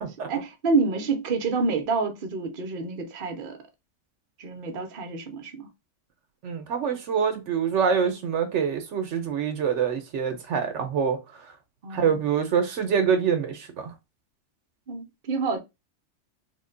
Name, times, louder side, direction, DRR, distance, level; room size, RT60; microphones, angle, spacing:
voice 1, 0.3-3.6 4.4-5.7 11.8-12.2 14.9-15.6, right 4 dB, 50° right, 0.8 m, -28 dB
voice 2, 6.4-11.5 11.9-13.9, right 7 dB, 80° right, 1.0 m, -25 dB
3.5 x 2.1 x 3.7 m
omnidirectional pair, 1.2 m